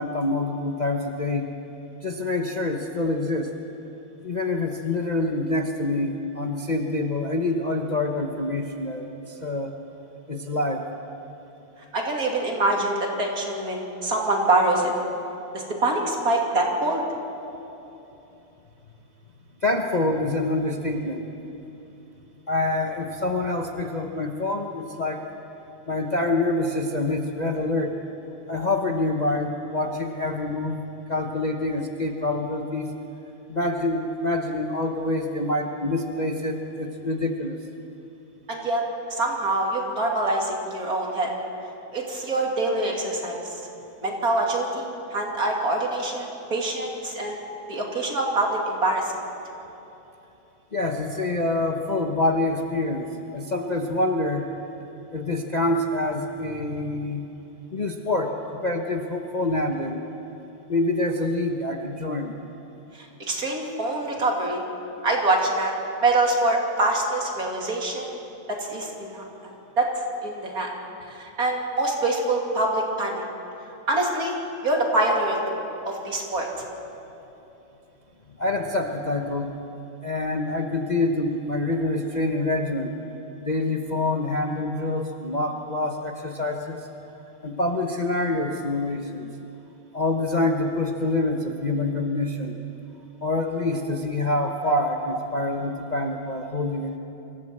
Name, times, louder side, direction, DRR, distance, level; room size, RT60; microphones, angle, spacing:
voice 1, 0.0-1.5 2.0-3.5 4.2-9.7 10.3-10.8 19.6-21.3 22.5-25.2 25.9-28.0 28.5-30.8 31.1-32.9 33.5-37.6 50.7-54.5 55.1-57.3 57.7-58.4 58.6-60.0 60.7-62.4 78.4-79.5 80.0-82.9 83.4-86.9 87.4-89.3 89.9-92.6 93.2-97.0, left 2 dB, 85° left, 2 dB, 0.4 m, -26 dB
voice 2, 11.9-14.9 15.5-17.0 38.5-38.8 39.1-41.3 41.9-43.6 44.0-47.4 47.7-49.1 63.3-64.6 65.0-65.7 66.0-68.1 68.5-69.9 70.2-70.7 71.1-73.2 73.9-74.3 74.6-75.4 75.8-76.5 94.6-94.8, right 2 dB, 40° right, -1 dB, 3.1 m, -25 dB
25.5 x 15.0 x 7.7 m, 3.0 s
omnidirectional pair, 2.4 m